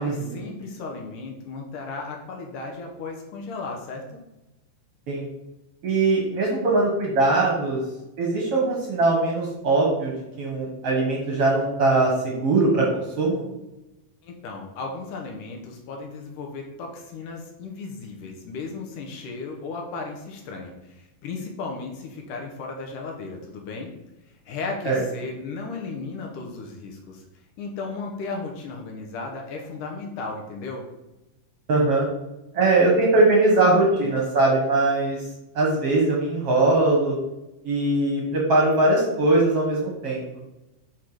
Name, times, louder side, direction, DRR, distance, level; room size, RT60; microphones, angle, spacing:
voice 1, 0.0-4.2 14.2-23.9 24.3-27.3 27.6-30.9, left 3 dB, 70° left, 1 dB, 2.4 m, -35 dB
voice 2, 5.8-7.8 8.2-10.1 10.4-13.4 24.9-25.0 31.7-32.1 32.5-35.2 35.6-37.2 37.6-40.2, right 2 dB, 55° right, -2 dB, 1.9 m, -21 dB
8.3 x 4.5 x 4.9 m, 0.96 s
omnidirectional pair, 4.1 m